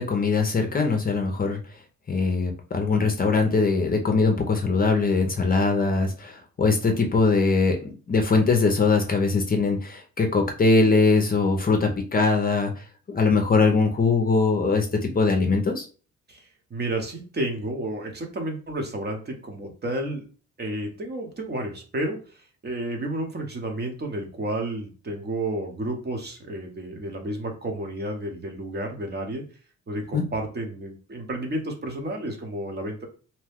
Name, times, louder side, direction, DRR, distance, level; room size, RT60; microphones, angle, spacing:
voice 1, 0.0-1.6 2.1-7.8 8.1-12.7 13.1-15.8 30.1-30.2, left 4 dB, 30° left, 3 dB, 0.6 m, -21 dB
voice 2, 16.3-20.2 20.6-22.4 22.6-29.4 29.9-33.1, right 1 dB, 35° right, 3 dB, 0.9 m, -31 dB
2.8 x 2.2 x 3.5 m, 0.37 s
cardioid pair, 90°, 30 cm